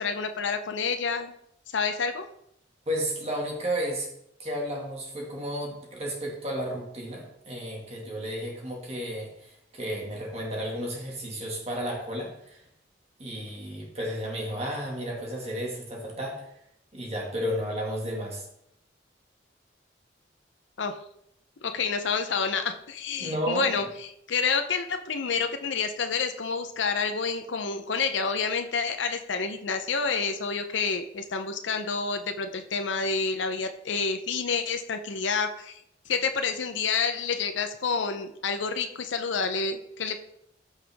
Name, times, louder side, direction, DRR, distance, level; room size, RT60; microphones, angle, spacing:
voice 1, 0.0-1.3 1.7-2.3 20.8-21.0 21.6-40.3, left 5 dB, 80° left, 6 dB, 0.7 m, -29 dB
voice 2, 2.9-4.1 4.4-12.6 13.2-16.4 16.9-18.5 23.2-23.7, equal, 35° right, -1 dB, 2.0 m, -33 dB
14.5 x 5.7 x 3.5 m, 0.76 s
head